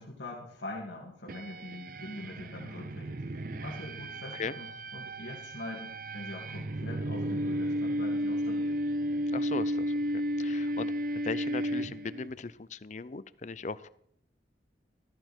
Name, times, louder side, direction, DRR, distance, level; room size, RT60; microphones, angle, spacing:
voice 1, 0.0-4.7 4.9-8.8, left 2 dB, 90° left, -3 dB, 2.6 m, -43 dB
sound 1, 1.3-12.3, equal, 50° right, 0.8 m, -33 dB
voice 2, 9.3-10.9 11.2-13.9, left 4 dB, 45° left, 16 dB, 0.5 m, -38 dB
13.5 x 13.5 x 4.5 m, 0.68 s
head